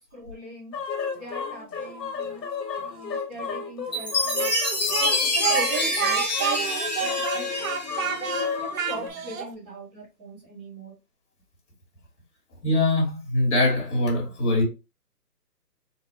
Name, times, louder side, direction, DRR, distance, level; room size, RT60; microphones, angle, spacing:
voice 1, 0.1-0.7 1.1-2.5 2.8-4.5 5.0-7.8 8.1-10.9, right 2 dB, 10° right, 0.9 m, -40 dB
sound 1, 0.7-9.1, left 5 dB, 90° left, 1.1 m, -33 dB
Chime, 3.9-8.5, left 1 dB, 30° left, 0.6 m, -27 dB
Speech, 4.4-9.5, right 7 dB, 55° right, 0.7 m, -29 dB
voice 2, 12.6-14.6, left 2 dB, 45° left, 1.9 m, -22 dB
4.0 x 2.3 x 3.1 m
hypercardioid pair, 160°, 49 cm